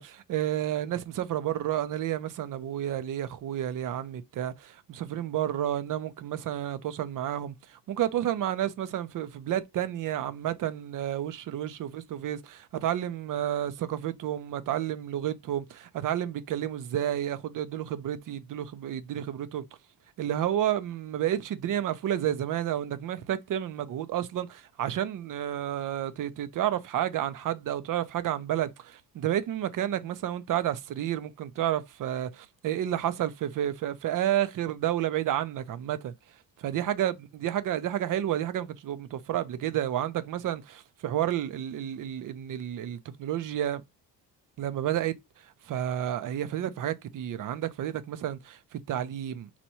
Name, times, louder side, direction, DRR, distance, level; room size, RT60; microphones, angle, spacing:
voice 1, 0.0-19.7 20.2-36.1 36.6-43.8 44.6-45.2 45.7-49.5, right 11 dB, 55° right, 0.5 m, -31 dB
4.1 x 2.2 x 2.8 m
cardioid pair, 115°, 40 cm